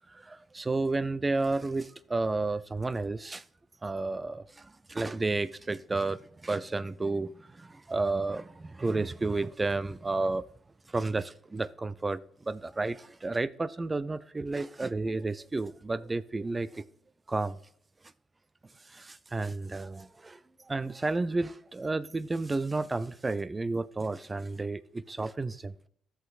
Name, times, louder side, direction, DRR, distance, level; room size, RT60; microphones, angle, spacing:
voice 1, 0.0-3.4 3.8-10.5 10.9-16.8 17.3-17.6 18.8-25.7, right 3 dB, 25° right, 0.5 m, -32 dB
14.0 x 5.9 x 2.5 m
supercardioid pair, 75°, 0 cm